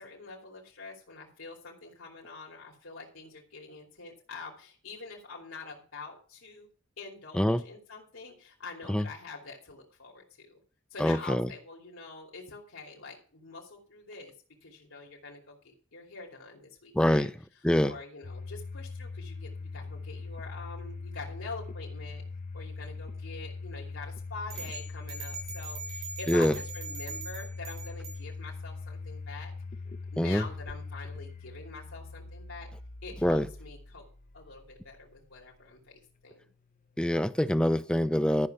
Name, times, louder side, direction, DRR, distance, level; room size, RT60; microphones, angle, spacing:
voice 1, 0.0-6.7 7.0-10.6 10.9-14.3 14.6-17.3 17.8-22.2 22.5-29.5 30.1-32.7 33.0-34.1 34.3-36.5, left 4 dB, 85° left, 2.8 m, -45 dB
voice 2, 11.0-11.5 16.9-17.3 17.6-18.0 26.3-26.6 30.2-30.4 33.2-33.5 37.0-38.5, equal, 5° left, 0.6 m, -25 dB
Domestic sounds home sounds, 18.2-35.2, left 3 dB, 40° left, 0.8 m, -41 dB
sound 1, 24.5-28.2, right 4 dB, 75° right, 7.4 m, -41 dB
13.0 x 5.9 x 6.6 m
head